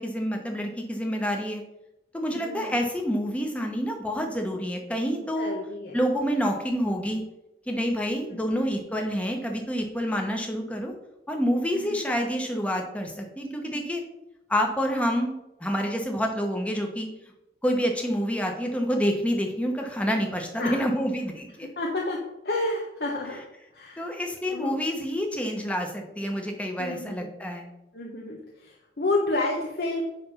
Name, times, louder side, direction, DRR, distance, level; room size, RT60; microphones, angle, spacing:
voice 1, 0.0-1.6 2.1-5.5 5.9-7.2 7.7-10.9 11.3-14.0 14.5-17.1 17.6-21.7 24.0-27.7, equal, 5° left, 2 dB, 1.0 m, -28 dB
voice 2, 2.3-2.7 5.4-6.0 8.4-8.7 20.6-20.8 21.8-22.2 22.4-23.4 23.7-24.0 24.5-24.8 26.8-27.3 27.9-30.0, left 2 dB, 60° left, -1 dB, 1.0 m, -30 dB
9.5 x 3.4 x 5.7 m, 0.89 s
head